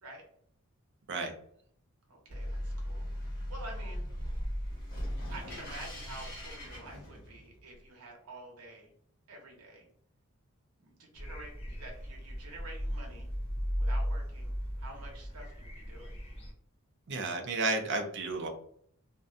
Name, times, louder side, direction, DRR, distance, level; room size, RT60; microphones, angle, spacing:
voice 1, 2.1-3.1 3.3-4.1 5.2-8.9 9.3-9.9 10.8-13.3 13.8-14.5 14.8-16.2, right 2 dB, 85° right, 0 dB, 0.8 m, -49 dB
sound 1, 2.3-7.6, equal, 45° left, 1.1 m, -38 dB
sound 2, 11.2-16.5, equal, 25° left, 0.6 m, -36 dB
voice 2, 17.1-18.5, right 3 dB, 50° right, 4 dB, 0.5 m, -32 dB
2.5 x 2.2 x 2.4 m, 0.65 s
head